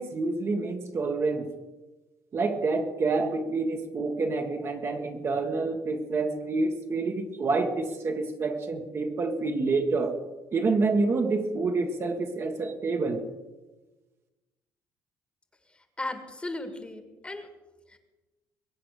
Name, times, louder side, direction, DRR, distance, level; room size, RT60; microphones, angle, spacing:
voice 1, 0.0-1.5 2.3-10.2 10.5-13.2, right 3 dB, 40° right, 4 dB, 1.7 m, -28 dB
voice 2, 16.0-17.5 17.9-18.0, left 2 dB, 15° left, 7 dB, 1.8 m, -36 dB
22.5 x 8.2 x 6.6 m, 1.1 s
cardioid pair, 120°, 7 cm